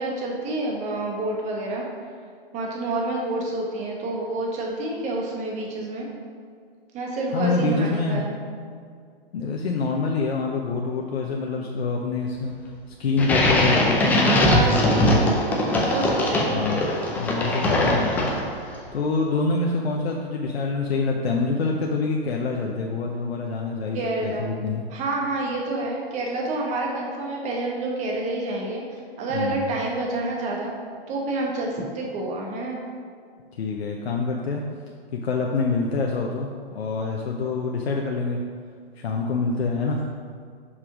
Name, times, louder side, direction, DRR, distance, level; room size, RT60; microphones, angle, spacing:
voice 1, 0.0-1.9 2.5-6.1 6.9-8.3 14.5-15.3 15.9-16.6 23.9-24.5 24.9-30.7 31.1-32.8, right 2 dB, 20° right, -1 dB, 1.2 m, -28 dB
voice 2, 7.3-8.2 9.3-12.7 13.0-14.6 14.9-15.1 16.5-16.8 17.1-18.3 18.9-24.8 29.3-29.7 33.5-34.6 35.1-38.4 39.0-40.0, left 4 dB, 80° left, 0 dB, 0.8 m, -26 dB
sound 1, 13.2-18.7, left 1 dB, 5° left, 0.4 m, -21 dB
5.6 x 4.9 x 4.9 m, 2.1 s
hypercardioid pair, 140°, 31 cm